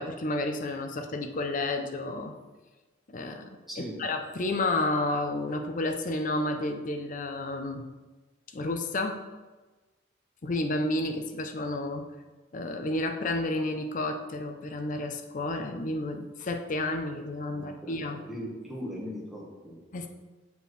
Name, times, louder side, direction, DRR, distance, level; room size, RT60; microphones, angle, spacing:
voice 1, 0.0-2.3 3.1-3.5 4.0-7.9 8.5-9.2 10.4-12.1 12.5-18.2 19.9-20.1, left 2 dB, 45° left, 5 dB, 0.5 m, -31 dB
voice 2, 17.5-19.8, equal, ahead, -5 dB, 1.3 m, -39 dB
6.9 x 5.1 x 3.2 m, 1.2 s
head